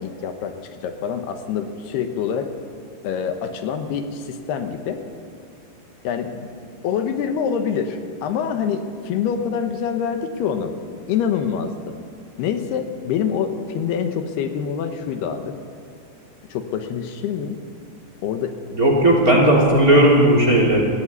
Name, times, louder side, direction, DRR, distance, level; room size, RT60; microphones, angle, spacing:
voice 1, 0.0-2.5 3.0-5.0 6.0-6.5 6.8-10.7 11.1-11.9 12.4-15.5 16.5-17.6 18.2-18.5 19.3-19.5 19.9-20.0, left 7 dB, 80° left, 7 dB, 3.1 m, -26 dB
voice 2, 18.7-20.9, right 1 dB, 25° right, 0 dB, 3.0 m, -15 dB
18.5 x 15.0 x 9.8 m, 2.2 s
omnidirectional pair, 4.7 m